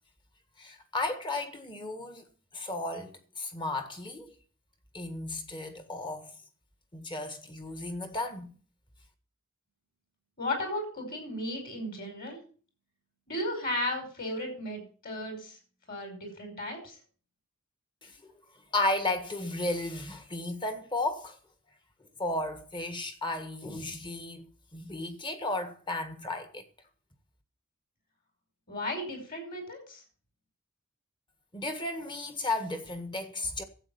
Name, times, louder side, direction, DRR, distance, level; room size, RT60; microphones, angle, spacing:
voice 1, 0.6-2.2 2.5-4.3 4.9-6.3 6.9-8.5 18.0-18.1 18.7-21.4 22.2-24.5 24.7-26.6 31.5-33.6, left 2 dB, 20° left, 1.6 m, -34 dB
voice 2, 10.4-12.4 13.3-15.6 15.9-17.0 28.7-30.0, left 1 dB, 40° left, 5.5 m, -35 dB
12.0 x 8.3 x 6.9 m
head